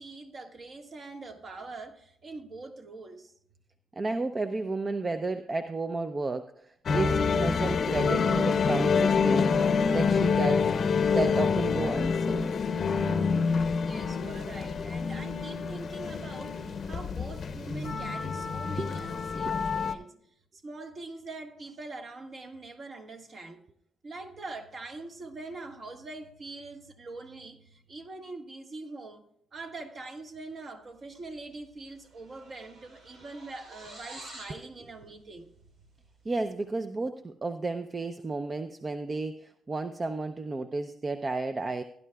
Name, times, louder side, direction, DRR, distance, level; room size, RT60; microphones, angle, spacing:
voice 1, 0.0-3.3 13.7-20.1 20.6-23.6 24.0-29.2 29.5-35.5, right 3 dB, 45° right, 1.6 m, -43 dB
voice 2, 3.9-9.6 9.9-10.7 11.1-12.5 18.8-19.0 19.4-19.5 36.2-41.8, right 3 dB, 30° right, 0.6 m, -32 dB
sound 1, 6.9-19.9, left 5 dB, 50° left, 0.7 m, -27 dB
sound 2, 31.4-31.7 31.9-34.6, right 1 dB, 75° right, 3.8 m, -48 dB
17.0 x 11.0 x 2.3 m
cardioid pair, 90°, 0 cm